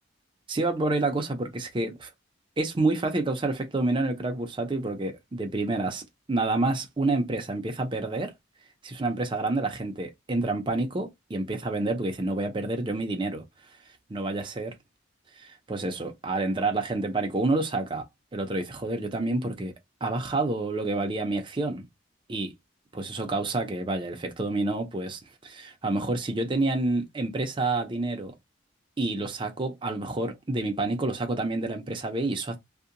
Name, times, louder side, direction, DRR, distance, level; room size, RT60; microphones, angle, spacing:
voice 1, 0.5-2.1 2.6-8.3 8.8-13.4 14.1-14.7 15.4-18.1 18.3-19.7 20.0-21.8 22.3-22.5 22.9-28.3 29.0-32.6, right 2 dB, 25° right, 0.5 m, -28 dB
2.7 x 2.1 x 2.5 m
head